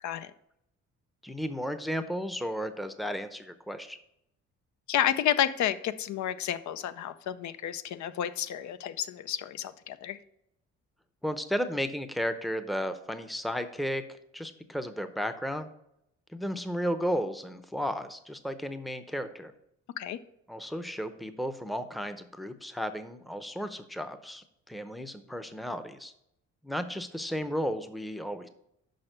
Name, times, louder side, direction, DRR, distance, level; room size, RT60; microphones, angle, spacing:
voice 1, 1.2-4.0 11.2-14.0 14.3-15.7 16.3-19.5 20.5-26.1 26.6-28.5, equal, ahead, 10 dB, 0.7 m, -34 dB
voice 2, 4.9-10.2 20.0-20.2, left 10 dB, 70° left, 13 dB, 0.6 m, -30 dB
6.4 x 5.4 x 6.6 m, 0.78 s
cardioid pair, 90°, 30 cm